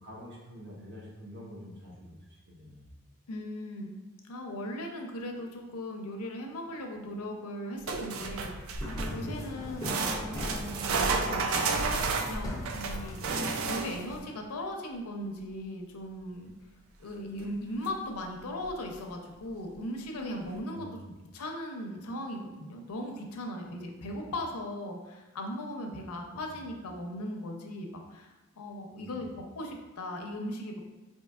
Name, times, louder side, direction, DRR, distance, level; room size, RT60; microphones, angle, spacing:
voice 1, 0.0-2.9 9.5-9.8 20.7-21.0 26.3-26.5 28.9-29.2, equal, 50° right, -4 dB, 0.9 m, -47 dB
voice 2, 3.3-3.9 4.2-8.5 9.1-11.6 12.2-13.2 13.6-16.5 17.0-20.9 21.3-29.3 29.5-30.8, left 1 dB, 90° left, 2 dB, 0.6 m, -38 dB
sound 1, 7.9-9.3 9.8-14.1 17.4-17.5 17.8-17.9 18.7-18.8, right 4 dB, 70° right, 0.3 m, -31 dB
sound 2, 8.7-14.2, left 1 dB, 15° left, 0.4 m, -38 dB
4.4 x 2.8 x 2.3 m, 1.1 s
head